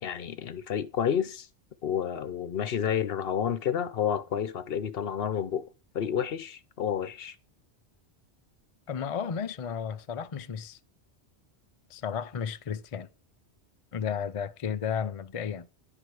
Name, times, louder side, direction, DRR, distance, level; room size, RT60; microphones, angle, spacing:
voice 1, 0.0-1.5 1.8-5.6 5.9-7.4, left 8 dB, 65° left, 0.9 m, -30 dB
voice 2, 8.9-10.8 11.9-13.1 13.9-15.7, left 7 dB, 45° left, 0.5 m, -33 dB
10.5 x 4.9 x 6.2 m
omnidirectional pair, 1.2 m